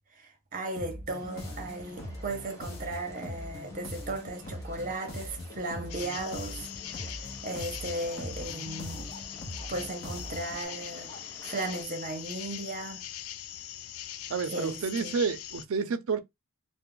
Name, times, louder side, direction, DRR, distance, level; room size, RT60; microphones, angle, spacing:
voice 1, 0.1-9.1 9.7-11.1 11.4-13.0 14.5-15.1, right 2 dB, 40° right, 0.7 m, -36 dB
sound 1, 0.8-10.6, left 1 dB, 45° left, 0.7 m, -41 dB
sound 2, 1.1-11.8, left 1 dB, 15° left, 0.8 m, -51 dB
sound 3, 5.9-15.7, left 11 dB, 85° left, 0.3 m, -42 dB
voice 2, 14.3-16.2, right 5 dB, 75° right, 0.4 m, -30 dB
2.3 x 2.0 x 3.6 m
head